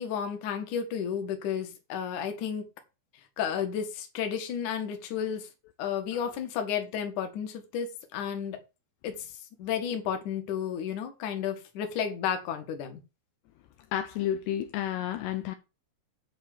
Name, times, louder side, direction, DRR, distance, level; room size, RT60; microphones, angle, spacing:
voice 1, 0.0-2.7 3.4-5.5 5.8-8.6 9.0-9.3 9.6-13.0, left 8 dB, 55° left, 2.6 m, -32 dB
voice 2, 13.9-15.6, left 11 dB, 80° left, 2.8 m, -31 dB
10.5 x 4.4 x 7.8 m
omnidirectional pair, 5.2 m